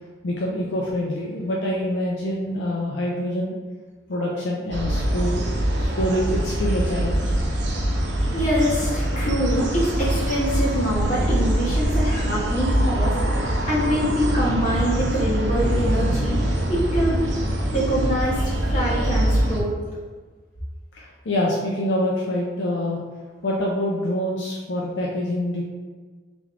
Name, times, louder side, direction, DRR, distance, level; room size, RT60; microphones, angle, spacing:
voice 1, 0.2-3.6 4.1-7.4 20.9-23.0 23.4-25.6, left 1 dB, 80° left, -3 dB, 0.5 m, -26 dB
sound 1, 4.7-19.6, right 1 dB, 70° right, 0.7 m, -23 dB
voice 2, 8.3-16.4 16.7-19.8, equal, 40° left, -7 dB, 1.4 m, -25 dB
3.4 x 3.2 x 3.7 m, 1.4 s
head